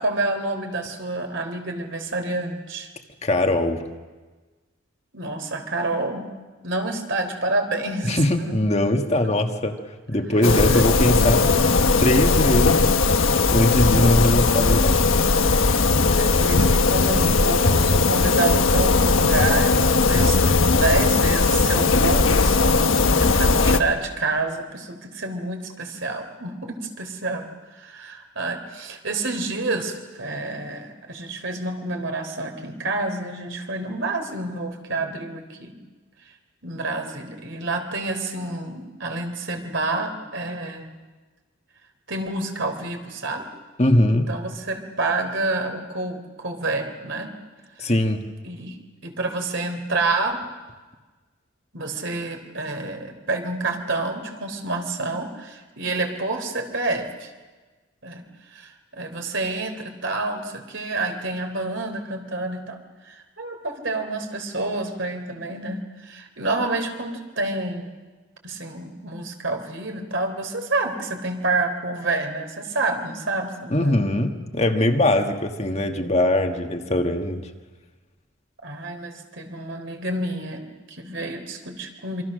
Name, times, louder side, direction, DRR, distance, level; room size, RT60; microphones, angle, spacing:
voice 1, 0.0-2.9 5.1-6.3 6.6-8.8 9.2-9.3 10.7-10.8 11.3-11.7 16.2-27.5 27.7-35.8 36.6-40.9 42.1-43.5 44.1-47.3 47.8-47.9 48.4-50.4 51.7-57.3 58.0-58.2 58.5-62.8 63.1-67.9 68.4-73.9 78.6-82.2, right 2 dB, 60° right, 5 dB, 3.4 m, -28 dB
voice 2, 3.2-3.8 8.1-9.8 10.1-11.5 12.0-13.1 13.5-15.0 43.8-44.3 47.8-48.2 73.7-77.5, left 1 dB, 30° left, 5 dB, 1.5 m, -21 dB
sound 1, 10.4-23.8, left 3 dB, 75° left, 1.3 m, -18 dB
27.0 x 25.5 x 6.5 m, 1.3 s
head